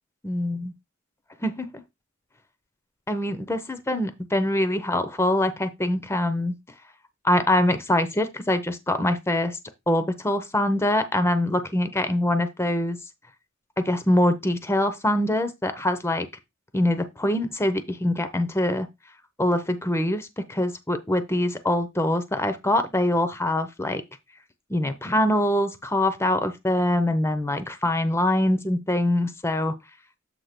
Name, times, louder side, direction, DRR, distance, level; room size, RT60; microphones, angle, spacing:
voice 1, 0.2-0.7 1.4-1.8 3.1-6.6 7.2-9.6 9.9-13.0 13.8-16.3 16.7-18.9 19.4-24.0 24.7-29.7, left 1 dB, 10° left, 0.7 m, -24 dB
8.0 x 2.8 x 5.9 m
head